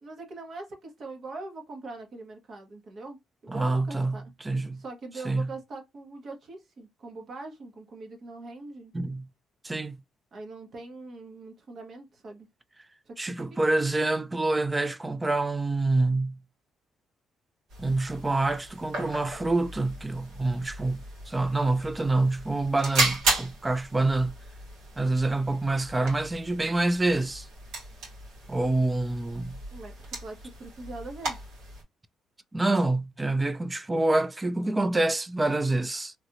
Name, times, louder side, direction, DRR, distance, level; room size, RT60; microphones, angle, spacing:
voice 1, 0.0-4.3 4.8-8.9 10.3-12.5 13.1-13.6 29.7-31.4, right 3 dB, 55° right, 1.1 m, -42 dB
voice 2, 3.5-4.8 5.2-5.5 8.9-9.3 9.6-10.0 13.2-16.4 17.8-24.4 25.0-27.5 28.5-29.6 32.5-36.1, right 2 dB, 20° right, 0.4 m, -26 dB
sound 1, 17.7-31.8, right 3 dB, 85° right, 1.9 m, -35 dB
3.2 x 2.4 x 2.9 m
cardioid pair, 90°, 0 cm